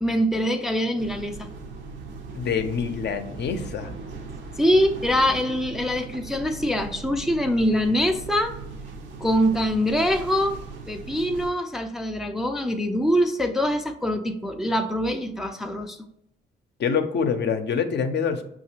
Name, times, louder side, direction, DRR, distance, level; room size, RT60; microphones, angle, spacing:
voice 1, 0.0-1.5 4.6-8.6 9.2-10.6 10.9-16.0, equal, ahead, 4 dB, 0.4 m, -24 dB
sound 1, 1.0-11.5, right 4 dB, 75° right, 0.7 m, -39 dB
voice 2, 2.3-3.9 16.8-18.4, left 6 dB, 60° left, 7 dB, 0.6 m, -25 dB
5.8 x 2.4 x 2.8 m, 0.75 s
cardioid pair, 90°, 20 cm